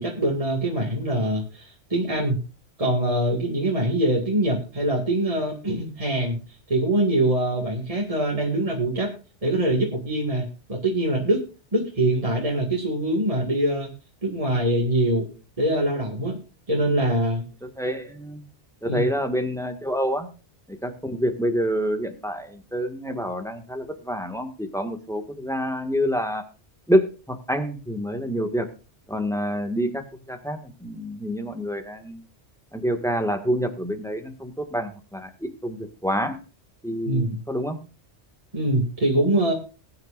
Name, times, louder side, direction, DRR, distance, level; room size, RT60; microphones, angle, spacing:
voice 1, 0.0-2.4 2.8-6.4 6.7-9.1 9.4-11.4 11.7-13.9 14.2-15.3 15.6-16.4 16.7-17.4 18.9-19.0 37.1-37.4 38.5-39.5, right 1 dB, 30° right, -2 dB, 2.2 m, -23 dB
voice 2, 17.6-18.5 18.8-20.3 20.7-26.4 26.9-28.7 29.1-32.3 32.7-36.4 36.8-37.8, equal, 5° left, 5 dB, 1.7 m, -27 dB
21.0 x 9.5 x 2.5 m, 0.34 s
omnidirectional pair, 1.2 m